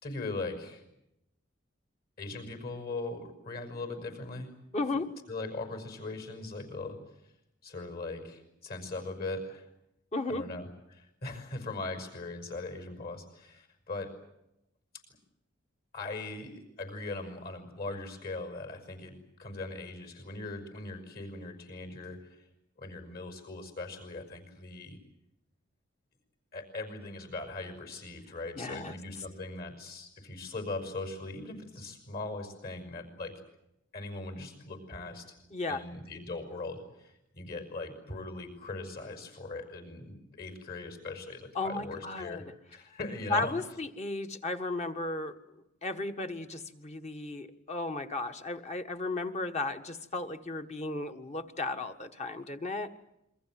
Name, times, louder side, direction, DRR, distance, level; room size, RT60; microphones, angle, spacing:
voice 1, 0.0-0.8 2.2-4.6 5.3-7.0 7.6-9.6 10.3-14.2 15.9-22.3 22.8-25.0 26.5-33.3 33.9-35.2 35.7-42.5 42.7-43.6, left 2 dB, 50° left, 8 dB, 5.9 m, -40 dB
voice 2, 4.7-5.1 10.1-10.4 28.6-28.9 35.5-35.8 41.5-42.4 43.3-45.4 45.8-52.9, left 2 dB, 35° left, 6 dB, 1.6 m, -34 dB
28.0 x 23.5 x 7.7 m, 0.84 s
head